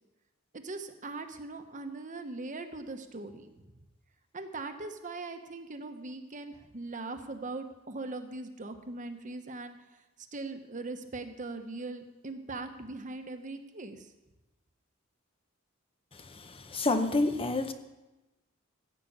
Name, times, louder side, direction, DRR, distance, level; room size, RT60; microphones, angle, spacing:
voice 1, 0.5-3.7 4.3-9.8 10.3-14.1, right 3 dB, 40° right, 7 dB, 1.0 m, -40 dB
voice 2, 16.3-17.7, left 2 dB, 25° left, 8 dB, 0.8 m, -28 dB
15.5 x 5.9 x 8.6 m, 1.1 s
head